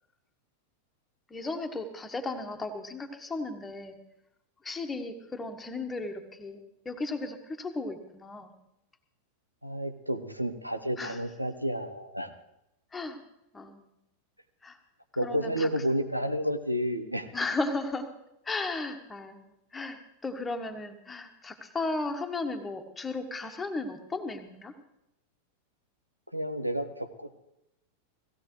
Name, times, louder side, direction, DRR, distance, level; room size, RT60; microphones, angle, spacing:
voice 1, 1.3-4.0 4.6-8.5 11.0-11.2 12.9-13.2 13.5-13.9 14.6-14.8 15.2-15.7 17.3-18.1 18.4-24.7, left 3 dB, 15° left, 6 dB, 1.4 m, -35 dB
voice 2, 9.6-12.3 15.2-17.3 26.3-27.5, equal, 90° right, 11 dB, 0.9 m, -31 dB
17.5 x 16.0 x 3.2 m, 0.87 s
figure-of-eight pair, 90°, 0 cm